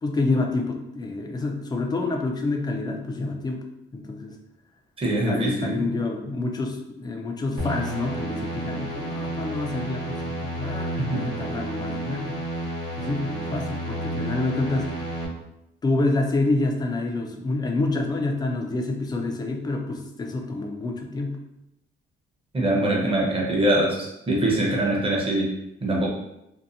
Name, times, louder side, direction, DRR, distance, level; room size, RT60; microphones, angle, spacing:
voice 1, 0.0-3.6 3.9-4.4 5.2-12.4 13.0-14.9 15.8-21.4, left 2 dB, 20° left, 2 dB, 0.4 m, -27 dB
voice 2, 5.0-5.9 11.0-11.2 22.5-25.5 25.8-26.1, right 1 dB, 25° right, -3 dB, 0.9 m, -23 dB
sound 1, 7.6-15.3, right 1 dB, 55° right, 1.2 m, -31 dB
2.7 x 2.2 x 2.5 m, 0.86 s
cardioid pair, 90°, 20 cm